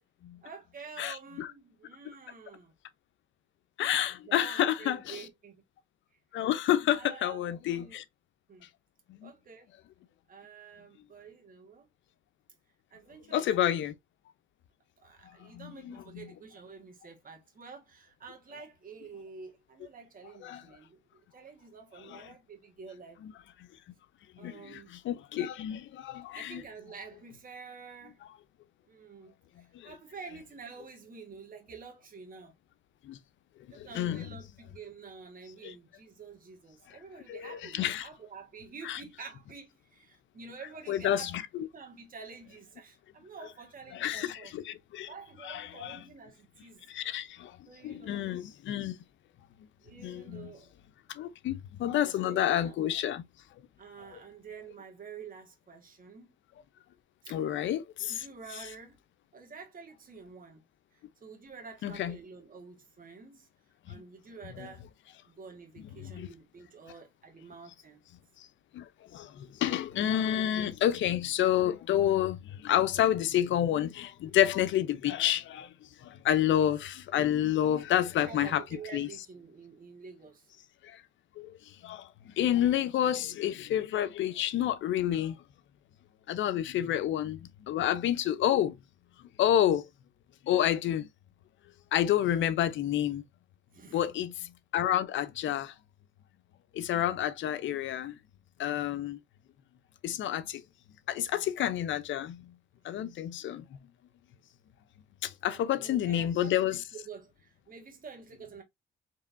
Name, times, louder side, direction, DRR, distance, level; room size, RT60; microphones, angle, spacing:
voice 1, 0.4-2.7 4.2-5.6 6.9-7.4 7.7-8.0 8.5-8.7 9.2-9.7 10.3-11.9 12.9-13.8 15.0-23.2 24.4-24.9 26.3-28.2 28.9-32.5 33.7-41.3 41.6-44.5 45.1-46.8 47.7-48.3 49.8-50.7 52.1-53.0 53.8-56.3 57.2-57.4 58.1-59.0 59.3-60.6 60.9-63.5 63.9-64.8 65.2-68.1 78.2-80.5 93.7-94.0 105.5-108.6, right 5 dB, 45° right, 1.6 m, -48 dB
voice 2, 1.0-1.5 3.8-5.2 6.3-8.0 9.2-9.3 13.3-13.9 15.4-16.2 20.4-20.6 22.1-22.2 24.4-26.6 29.7-29.9 33.0-33.2 33.8-34.2 35.6-35.7 37.3-38.1 38.8-39.0 40.9-41.7 43.9-45.1 45.4-46.0 46.9-47.6 47.8-49.0 50.0-50.5 51.2-53.2 57.3-58.3 61.8-62.1 64.6-64.7 66.0-66.3 68.7-68.8 69.1-75.7 76.0-78.6 78.9-79.1 80.8-81.0 81.4-81.5 81.8-82.1 82.4-85.4 86.3-88.8 89.4-89.9 90.5-91.1 91.9-93.2 93.9-95.7 96.7-98.2 98.6-99.2 100.0-100.6 101.1-102.4 102.8-103.6 105.2-106.8, left 11 dB, 75° left, 0.6 m, -29 dB
4.7 x 3.0 x 2.6 m
cardioid pair, 90°, 20 cm